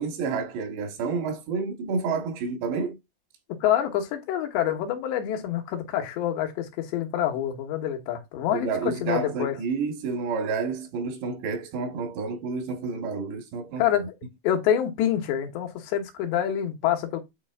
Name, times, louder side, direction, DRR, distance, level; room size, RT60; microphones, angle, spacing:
voice 1, 0.0-3.0 8.5-14.1, right 5 dB, 85° right, 4.1 m, -30 dB
voice 2, 3.6-9.6 13.8-14.1 14.4-17.2, left 10 dB, 85° left, 3.6 m, -26 dB
9.9 x 4.4 x 3.6 m
omnidirectional pair, 4.8 m